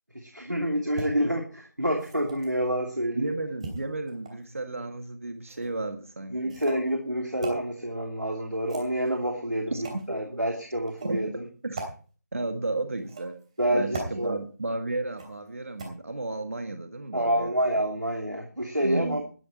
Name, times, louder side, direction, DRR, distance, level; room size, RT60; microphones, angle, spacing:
voice 1, 0.1-3.3 6.3-11.4 13.6-14.4 17.1-19.2, right 1 dB, 85° right, 2 dB, 2.8 m, -28 dB
sound 1, 0.9-1.1 1.9-2.6 3.6-4.5 5.5-5.7 6.5-6.9 7.4-7.6 8.5-9.2 9.8-10.1 10.9-11.2 11.7-11.9 13.0-13.4 13.9-14.1 15.2-15.5 15.8-15.9, right 3 dB, 20° right, 3.0 m, -38 dB
voice 2, 3.1-6.6 9.7-10.0 11.0-11.2 11.6-11.8 12.3-13.3 13.7-17.6 18.8-19.2, right 2 dB, 50° right, 7 dB, 1.6 m, -33 dB
13.0 x 12.5 x 4.3 m, 0.38 s
figure-of-eight pair, 160°, 10 cm